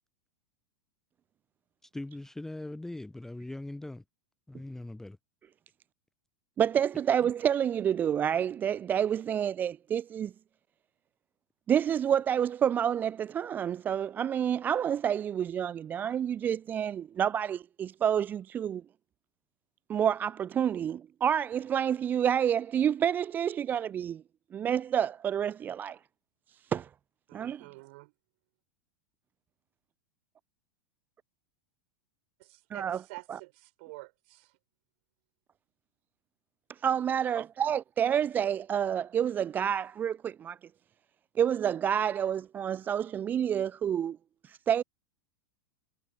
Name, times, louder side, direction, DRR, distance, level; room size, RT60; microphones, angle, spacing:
voice 1, 1.8-4.0 4.5-5.2, left 2 dB, 5° left, 0.7 m, -40 dB
voice 2, 6.6-10.3 11.7-18.8 19.9-24.2 24.5-26.0 26.7-26.9 27.3-27.6 32.7-33.0 33.3-33.4 36.7-40.6 41.4-44.2 44.4-44.8, right 9 dB, 20° right, 0.4 m, -28 dB
voice 3, 27.3-28.1 32.4-34.5, right 26 dB, 50° right, 4.3 m, -48 dB
figure-of-eight pair, 90°, 9 cm